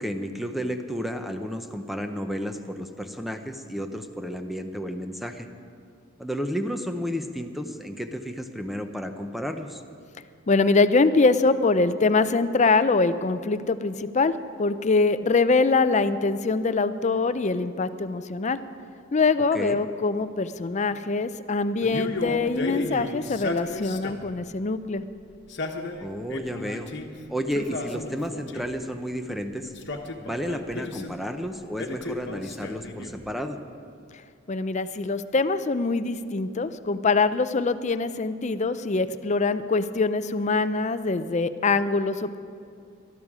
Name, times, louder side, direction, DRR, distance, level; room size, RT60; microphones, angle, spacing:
voice 1, 0.0-5.5 6.2-9.8 19.5-19.8 26.0-26.9 27.3-29.7 30.2-33.6, equal, ahead, 6 dB, 0.7 m, -32 dB
voice 2, 10.5-14.3 14.6-18.6 19.1-25.0 34.5-42.4, left 3 dB, 35° left, 12 dB, 0.5 m, -23 dB
Male speech man speaking, 21.8-24.4 25.3-27.1 27.5-28.8 29.7-31.2 31.8-33.3, left 2 dB, 60° left, 1.2 m, -34 dB
19.5 x 12.5 x 4.9 m, 2.3 s
head